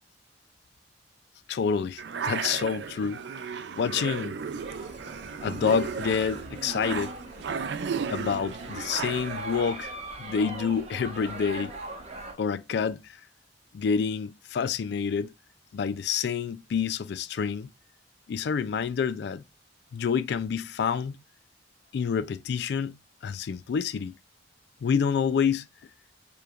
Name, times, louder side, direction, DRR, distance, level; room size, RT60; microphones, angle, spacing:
voice 1, 1.5-3.2 3.8-4.3 5.4-7.1 8.1-9.9 10.2-11.7 12.4-13.0 13.7-15.3 15.7-17.7 18.3-19.4 19.9-21.2 21.9-23.0 23.2-24.1 24.8-25.7, left 6 dB, 65° left, 0.3 m, -28 dB
sound 1, 2.0-9.7, right 6 dB, 65° right, 0.4 m, -35 dB
sound 2, 4.6-12.3, right 2 dB, 40° right, 0.9 m, -41 dB
4.8 x 3.2 x 2.3 m
head